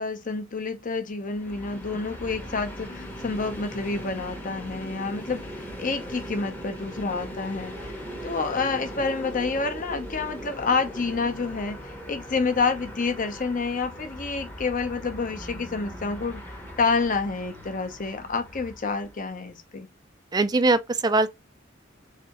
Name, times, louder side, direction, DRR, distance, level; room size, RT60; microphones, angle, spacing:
voice 1, 0.0-19.9, left 4 dB, 40° left, 0.7 m, -29 dB
Train, 1.2-19.4, equal, 10° left, 0.8 m, -39 dB
voice 2, 20.3-21.3, right 3 dB, 20° right, 0.3 m, -21 dB
3.5 x 3.3 x 2.9 m
head